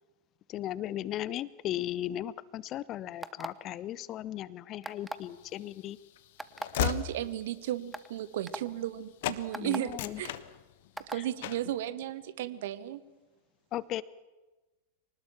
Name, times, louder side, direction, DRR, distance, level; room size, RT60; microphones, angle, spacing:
voice 1, 0.5-6.0 9.5-10.2 11.1-11.2 13.7-14.0, left 13 dB, 35° left, 21 dB, 0.7 m, -36 dB
sound 1, 3.2-3.7 4.8-5.3 6.4-6.7 7.4-7.5 7.9-8.1 8.5-8.6 9.5-9.8 11.0-11.2, right 1 dB, 5° right, 1.0 m, -38 dB
Train / Slam, 5.3-9.0 9.2-9.4 9.8-11.0 11.4-11.7, left 14 dB, 50° left, 1.2 m, -36 dB
voice 2, 6.8-10.3 11.1-13.0, right 13 dB, 55° right, 16 dB, 1.3 m, -35 dB
24.5 x 19.5 x 7.3 m, 1.2 s
figure-of-eight pair, 90°, 0 cm